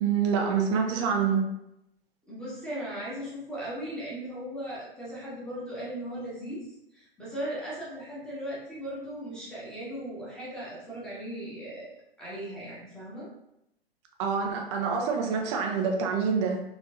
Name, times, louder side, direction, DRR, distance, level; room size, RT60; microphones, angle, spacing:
voice 1, 0.0-1.5 14.2-16.6, right 6 dB, 30° right, 2 dB, 0.6 m, -26 dB
voice 2, 2.3-6.6 6.9-13.3, right 1 dB, 5° left, -8 dB, 1.5 m, -37 dB
4.5 x 3.2 x 2.6 m, 0.84 s
figure-of-eight pair, 115°, 30 cm